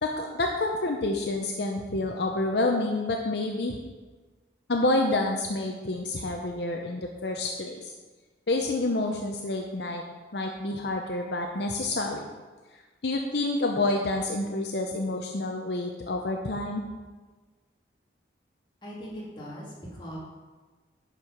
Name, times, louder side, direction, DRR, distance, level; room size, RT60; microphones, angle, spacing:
voice 1, 0.0-3.8 4.7-7.9 8.5-10.0 10.3-12.2 13.0-16.8, left 2 dB, 65° left, 2 dB, 0.7 m, -28 dB
voice 2, 18.8-20.2, equal, 25° left, -6 dB, 2.4 m, -40 dB
10.0 x 4.8 x 5.8 m, 1.3 s
head